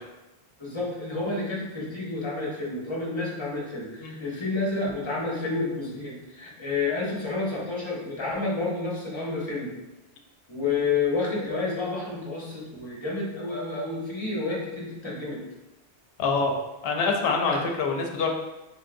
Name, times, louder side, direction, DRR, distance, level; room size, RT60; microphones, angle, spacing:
voice 1, 0.6-9.7 10.5-15.4 17.4-17.6, left 3 dB, 25° left, -5 dB, 1.0 m, -30 dB
voice 2, 16.2-16.5 16.8-18.3, left 4 dB, 65° left, 2 dB, 0.8 m, -25 dB
3.6 x 3.4 x 2.5 m, 1.0 s
omnidirectional pair, 1.1 m